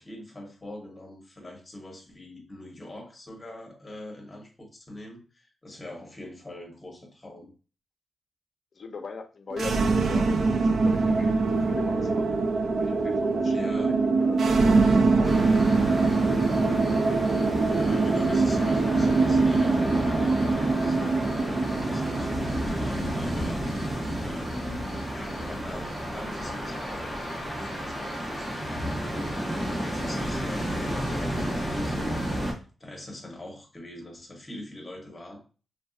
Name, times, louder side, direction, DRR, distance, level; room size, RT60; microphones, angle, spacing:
voice 1, 0.0-7.5 13.5-14.0 17.7-29.3 29.8-32.2 32.8-35.4, left 1 dB, 15° left, 0 dB, 0.9 m, -43 dB
voice 2, 8.7-10.3 10.5-11.3 11.7-12.2 12.8-14.4 14.7-15.4 16.0-16.2, left 4 dB, 45° left, 6 dB, 0.5 m, -40 dB
sound 1, 9.5-25.6, right 3 dB, 60° right, 0.3 m, -24 dB
sound 2, 15.2-32.5, equal, 10° right, 1.0 m, -31 dB
3.1 x 2.6 x 2.4 m, 0.36 s
wide cardioid pair, 155°, 0 cm